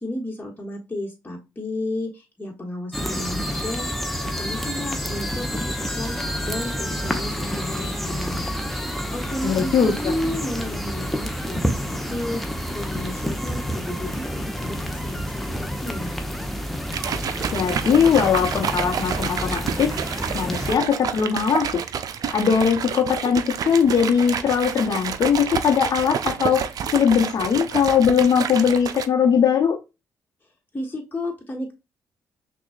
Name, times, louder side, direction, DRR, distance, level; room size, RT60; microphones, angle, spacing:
voice 1, 0.0-3.9 4.2-6.1 6.4-8.4 9.1-12.4 12.7-16.3 30.7-31.7, left 1 dB, 25° left, 1.3 m, -32 dB
sound 1, 2.9-20.8, equal, ahead, 0.8 m, -29 dB
voice 2, 9.4-10.1 17.5-19.9 20.3-21.8 22.3-26.7 26.9-29.8, left 7 dB, 60° left, 0.9 m, -20 dB
sound 2, 16.9-29.1, right 7 dB, 60° right, 0.4 m, -29 dB
5.9 x 2.3 x 2.4 m
supercardioid pair, 50°, 7 cm